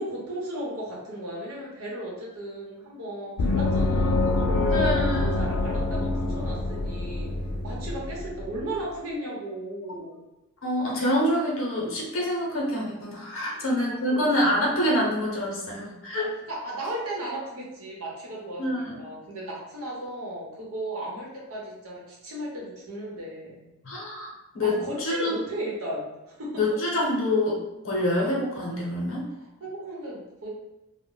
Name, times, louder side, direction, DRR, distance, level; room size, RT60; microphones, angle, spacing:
voice 1, 0.0-4.9 5.2-7.3 7.6-10.2 13.4-14.2 14.6-14.7 16.2-23.7 24.6-26.6 29.4-30.5, right 1 dB, 85° right, -4 dB, 0.9 m, -35 dB
Gong, 3.4-8.6, left 2 dB, 80° left, 0.3 m, -26 dB
voice 2, 4.7-5.5 10.6-16.3 18.6-19.0 23.8-24.3 24.5-25.3 26.5-27.6 27.8-29.3, left 1 dB, 60° left, -3 dB, 0.7 m, -26 dB
2.1 x 2.1 x 3.8 m, 0.98 s
head